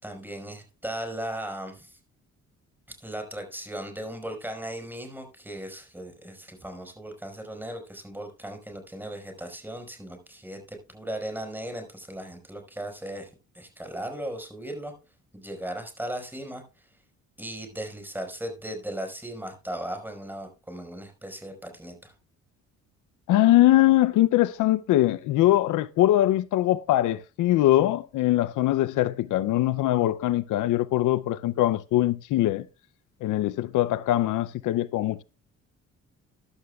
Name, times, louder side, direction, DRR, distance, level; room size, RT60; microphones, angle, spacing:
voice 1, 0.0-2.0 3.0-13.3 13.5-14.9 15.3-16.9 17.4-22.1, right 1 dB, 5° right, 4.9 m, -37 dB
voice 2, 23.3-32.7 33.2-35.2, left 14 dB, 80° left, 0.6 m, -22 dB
14.5 x 11.5 x 2.3 m
cardioid pair, 90°, 30 cm